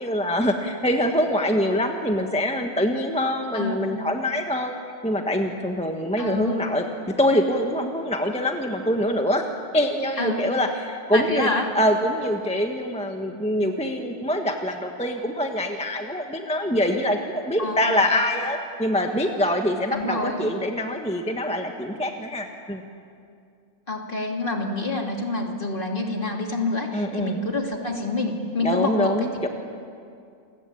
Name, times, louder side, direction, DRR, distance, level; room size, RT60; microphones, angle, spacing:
voice 1, 0.0-4.7 5.0-6.8 7.2-9.5 9.7-22.8 26.9-27.4 28.6-29.5, equal, 5° left, 3 dB, 1.4 m, -24 dB
voice 2, 3.5-3.9 6.2-6.7 10.2-10.5 11.1-11.7 17.6-18.0 19.9-20.5 23.9-29.5, left 2 dB, 35° left, 2 dB, 2.8 m, -27 dB
28.5 x 22.5 x 8.7 m, 2.4 s
omnidirectional pair, 1.6 m